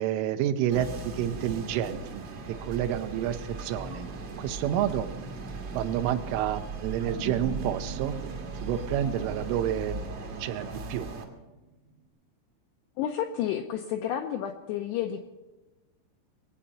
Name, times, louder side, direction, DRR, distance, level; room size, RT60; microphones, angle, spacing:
voice 1, 0.0-5.1 5.7-8.2 8.6-10.1 10.4-11.1, right 11 dB, 90° right, 9 dB, 3.3 m, -29 dB
sound 1, 0.7-11.2, right 3 dB, 70° right, 1.4 m, -38 dB
sound 2, 7.0-11.5 11.9-12.0, right 2 dB, 55° right, 1.0 m, -40 dB
voice 2, 13.0-15.2, left 10 dB, 85° left, 5 dB, 2.4 m, -31 dB
21.5 x 8.7 x 6.9 m, 1.1 s
omnidirectional pair, 5.7 m